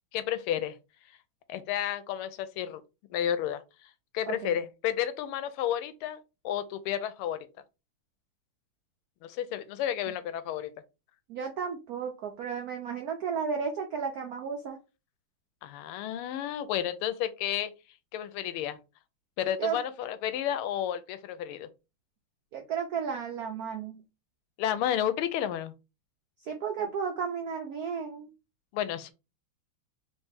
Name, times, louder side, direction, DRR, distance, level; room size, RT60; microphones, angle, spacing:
voice 1, 0.1-0.8 1.5-2.8 3.1-3.6 4.1-7.4 9.2-10.7 15.6-17.7 18.1-18.8 19.4-21.7 24.6-25.7 28.7-29.1, left 10 dB, 85° left, 1.5 m, -31 dB
voice 2, 11.3-14.8 19.6-19.8 22.5-24.0 26.4-28.3, right 6 dB, 80° right, 0.8 m, -33 dB
3.3 x 3.2 x 3.3 m
omnidirectional pair, 2.3 m